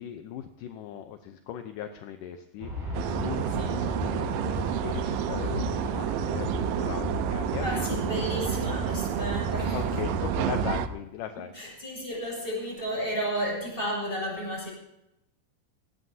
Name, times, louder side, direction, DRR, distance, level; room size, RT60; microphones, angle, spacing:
voice 1, 0.0-8.0 9.7-11.5, left 9 dB, 75° left, 7 dB, 2.3 m, -38 dB
Aircraft, 2.6-10.9, equal, 45° right, 6.1 m, -34 dB
sound 1, 2.9-10.9, right 12 dB, 85° right, 2.4 m, -30 dB
voice 2, 7.6-10.0 11.3-14.7, equal, 15° left, -3 dB, 6.9 m, -33 dB
19.0 x 17.0 x 2.8 m, 0.87 s
omnidirectional pair, 4.0 m